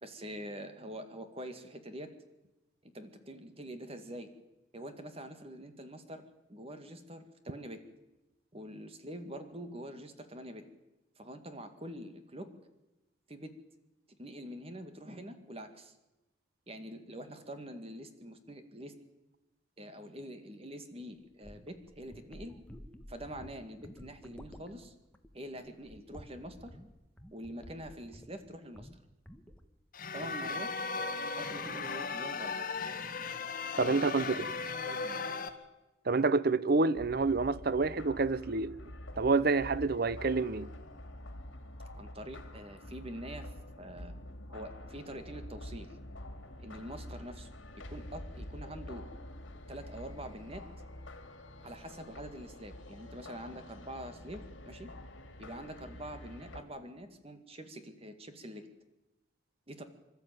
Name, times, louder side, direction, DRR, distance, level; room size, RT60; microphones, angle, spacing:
voice 1, 0.0-2.1 2.8-4.3 4.7-7.8 8.5-10.6 11.2-12.5 13.3-13.5 14.2-15.9 16.7-18.9 19.8-22.6 23.1-24.9 25.3-26.8 27.3-28.9 30.1-30.7 31.2-32.6 33.9-34.5 34.8-35.2 41.9-43.5 43.8-44.2 44.5-46.0 46.6-49.0 49.7-50.7 51.6-54.9 55.4-58.7 59.7-59.8, right 1 dB, 30° right, 2.1 m, -45 dB
sound 1, 21.2-28.5 28.7-29.0 29.3-29.7, equal, 5° left, 1.4 m, -52 dB
sound 2, 29.9-35.5, left 4 dB, 45° left, 1.6 m, -37 dB
voice 2, 33.8-34.5 36.1-38.7 39.2-40.7, right 3 dB, 50° right, 0.7 m, -28 dB
sound 3, 36.9-56.6, left 1 dB, 80° left, 2.6 m, -47 dB
25.5 x 13.0 x 9.2 m
head